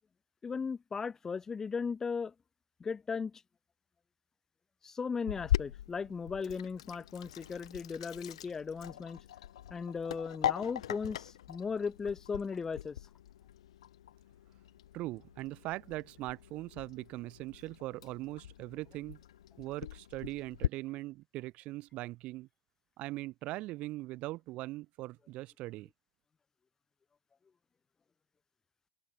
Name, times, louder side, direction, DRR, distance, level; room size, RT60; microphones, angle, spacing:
voice 1, 0.4-2.3 2.8-3.4 4.8-9.2 9.7-13.0, left 5 dB, 15° left, 1.3 m, -37 dB
Sink (filling or washing), 5.3-20.7, left 12 dB, 85° left, 2.3 m, -40 dB
voice 2, 14.9-19.2 19.6-22.5 23.0-25.9, right 18 dB, 40° right, 2.4 m, -41 dB
supercardioid pair, 135°, 3 cm